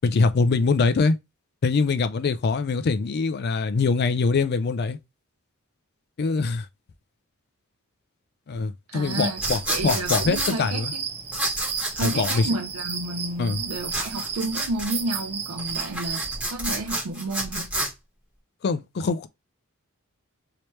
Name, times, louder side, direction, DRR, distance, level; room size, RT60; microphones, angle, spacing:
voice 1, 0.0-1.2 1.6-5.0 6.2-6.7 8.5-10.9 12.0-12.5 13.4-13.6 18.6-19.3, left 4 dB, 50° left, 0.4 m, -23 dB
voice 2, 8.9-9.4 9.7-11.1 12.0-17.7, right 2 dB, 85° right, 0.5 m, -31 dB
sound 1, 9.0-16.4, right 6 dB, 30° right, 0.4 m, -33 dB
sound 2, 9.4-10.5 11.3-12.4 13.9-15.0 15.6-17.9, right 1 dB, 5° right, 1.5 m, -29 dB
3.2 x 2.9 x 3.0 m
head